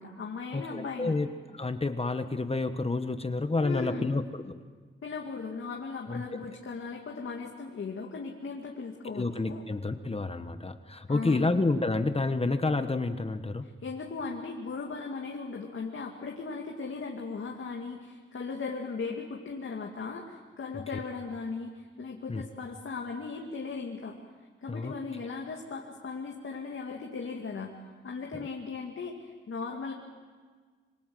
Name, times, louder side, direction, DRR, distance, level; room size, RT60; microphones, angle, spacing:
voice 1, 0.0-1.2 3.6-4.1 5.0-9.6 11.1-11.6 13.8-24.2 24.6-29.9, left 4 dB, 80° left, 0 dB, 2.4 m, -37 dB
voice 2, 0.5-4.6 6.1-6.2 9.1-13.7 22.3-22.4 24.7-24.9, left 3 dB, 30° left, 9 dB, 1.2 m, -29 dB
26.5 x 24.5 x 7.9 m, 1.5 s
wide cardioid pair, 85°, 21 cm